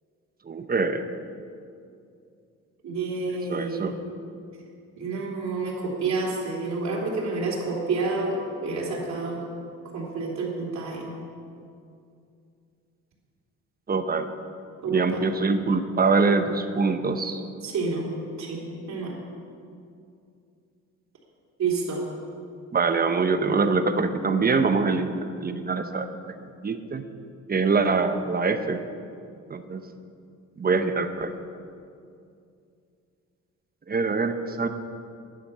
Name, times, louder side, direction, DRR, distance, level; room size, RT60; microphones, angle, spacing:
voice 1, 0.5-1.1 3.5-4.0 13.9-14.3 14.9-17.4 22.7-25.1 25.4-26.1 26.6-27.0 27.5-28.8 29.5-29.8 30.6-31.3 33.9-34.7, right 4 dB, 30° right, 9 dB, 0.8 m, -24 dB
voice 2, 2.8-3.9 5.0-9.4 9.8-11.1 14.8-15.3 17.6-18.1 18.4-18.6 18.9-19.1 21.6-22.0, right 3 dB, 65° right, -3 dB, 3.2 m, -29 dB
11.5 x 10.5 x 5.7 m, 2.4 s
cardioid pair, 90°, 30 cm